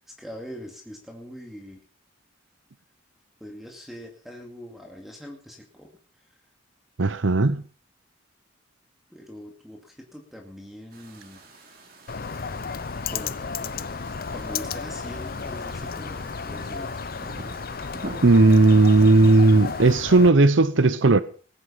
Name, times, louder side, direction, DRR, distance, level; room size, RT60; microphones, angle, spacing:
voice 1, 0.0-1.8 3.4-5.9 6.2-6.4 9.1-11.4 13.0-13.7 14.3-17.1, equal, ahead, 2.4 m, -42 dB
voice 2, 7.0-7.6 18.2-21.2, right 2 dB, 70° right, 0.8 m, -16 dB
sound 1, 10.9-20.1, right 2 dB, 50° right, 4.4 m, -45 dB
Bird, 12.1-20.3, left 5 dB, 50° left, 0.7 m, -33 dB
19.5 x 10.0 x 5.7 m
head